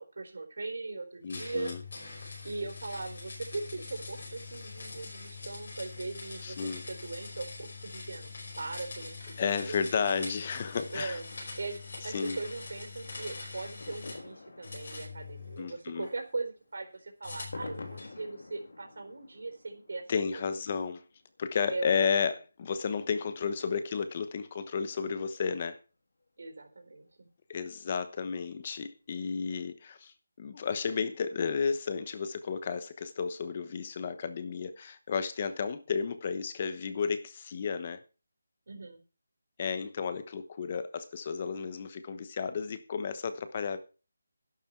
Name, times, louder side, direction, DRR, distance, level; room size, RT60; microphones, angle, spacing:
voice 1, 0.0-1.7 2.4-8.3 8.6-9.8 10.9-11.2 11.6-20.0 20.3-20.5 21.7-22.2 26.4-27.3 38.7-39.0, right 3 dB, 55° right, 4.3 m, -39 dB
voice 2, 1.2-1.8 6.4-6.8 9.4-11.2 12.1-12.4 15.6-16.1 20.1-21.0 21.4-25.8 27.5-30.1 30.4-38.0 39.6-43.8, left 6 dB, 20° left, 1.1 m, -32 dB
sound 1, 1.3-14.3 14.6-16.1 17.2-18.2, left 4 dB, 45° left, 5.3 m, -44 dB
sound 2, 10.5-23.2 23.6-23.7 23.9-24.0 24.2-24.3 24.7-24.8 25.7-25.8 26.2-26.3 27.6-28.0 28.3-28.4 28.8-28.9 29.2-29.3, left 3 dB, 60° left, 3.2 m, -50 dB
11.5 x 11.5 x 4.7 m
figure-of-eight pair, 180°, 0 cm